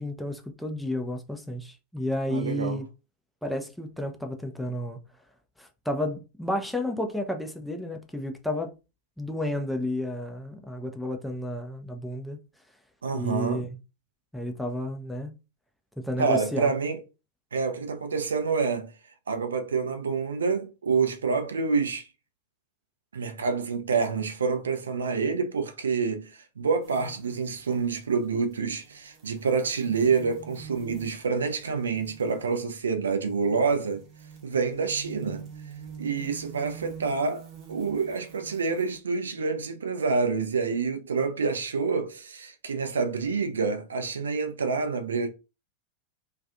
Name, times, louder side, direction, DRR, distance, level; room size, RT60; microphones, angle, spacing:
voice 1, 0.0-2.9 3.4-5.0 5.6-8.7 9.2-12.4 13.1-13.7 14.3-15.3 16.0-16.7, left 1 dB, ahead, 0.4 m, -31 dB
voice 2, 2.3-2.8 13.0-13.6 16.2-17.0 17.5-18.9 19.3-22.1 23.1-34.0 34.4-35.5 36.0-45.3, right 5 dB, 70° right, 0.4 m, -27 dB
sound 1, 26.8-39.0, right 8 dB, 40° right, 0.8 m, -46 dB
2.4 x 2.3 x 2.5 m
figure-of-eight pair, 90°, 0 cm